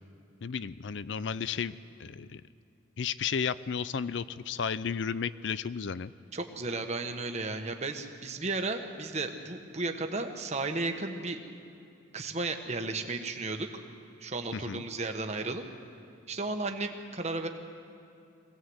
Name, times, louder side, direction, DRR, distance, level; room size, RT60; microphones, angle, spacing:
voice 1, 0.4-1.7 2.0-2.4 3.0-6.1 14.5-14.8, left 6 dB, 65° left, 16 dB, 0.5 m, -33 dB
voice 2, 6.3-11.4 12.1-13.7 14.2-15.6 16.3-17.5, right 3 dB, 35° right, 5 dB, 1.3 m, -34 dB
22.5 x 17.5 x 7.9 m, 2.6 s
head